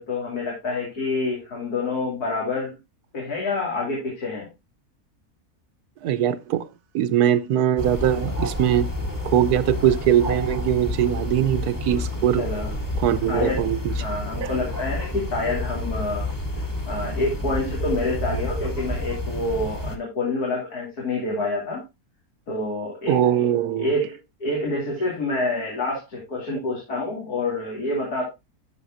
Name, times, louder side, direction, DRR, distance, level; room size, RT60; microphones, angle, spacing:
voice 1, 0.0-2.8 3.1-4.5 12.4-12.7 13.3-13.6 14.0-16.3 16.9-21.8 22.5-23.2 23.8-28.2, left 2 dB, 90° left, 3.6 m, -27 dB
voice 2, 6.0-6.7 6.9-8.9 9.2-12.4 13.0-13.9 14.4-14.6 23.1-23.9, right 10 dB, 90° right, 1.3 m, -21 dB
sound 1, 7.8-20.0, left 1 dB, 15° left, 1.2 m, -29 dB
12.0 x 7.0 x 2.6 m
omnidirectional pair, 1.6 m